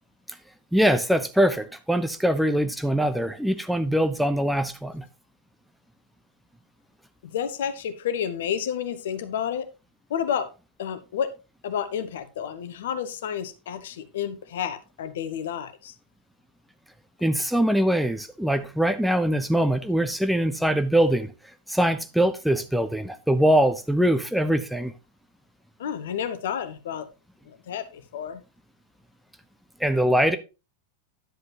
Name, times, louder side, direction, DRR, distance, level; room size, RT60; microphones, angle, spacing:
voice 1, 0.7-5.0 17.2-21.3 21.7-24.9 29.8-30.4, right 1 dB, ahead, 0.7 m, -22 dB
voice 2, 7.2-9.7 10.1-10.5 10.8-11.3 11.6-15.9 25.8-27.1 27.5-28.4, left 8 dB, 60° left, 1.0 m, -30 dB
10.5 x 7.8 x 2.8 m
figure-of-eight pair, 90°, 0 cm